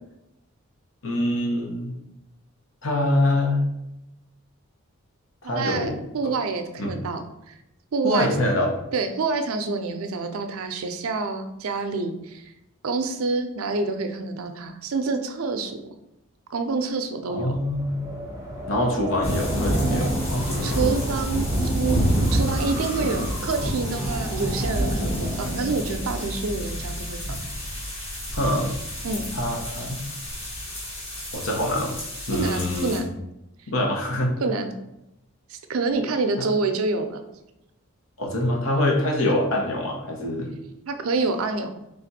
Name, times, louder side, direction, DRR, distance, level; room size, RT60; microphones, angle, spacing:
voice 1, 1.0-1.9 2.8-3.7 5.4-6.0 6.2-6.3 6.8-7.0 8.0-8.7 17.3-18.1 18.6-20.8 28.3-28.8 29.3-30.0 31.3-31.9 32.3-33.0 33.7-34.3 36.4-36.5 38.2-40.5, left 1 dB, 70° left, -1 dB, 0.9 m, -25 dB
voice 2, 5.4-7.5 7.9-8.3 8.9-12.5 12.8-15.8 16.5-17.6 20.6-21.5 21.7-27.4 29.0-29.3 32.3-33.1 34.4-34.7 35.5-37.2 40.9-41.7, right 3 dB, 80° right, 7 dB, 0.5 m, -27 dB
Wind, 17.4-26.1, right 1 dB, 15° right, 0.6 m, -37 dB
sound 1, 19.2-33.0, equal, 30° left, 1.3 m, -28 dB
3.4 x 2.5 x 4.1 m, 0.88 s
head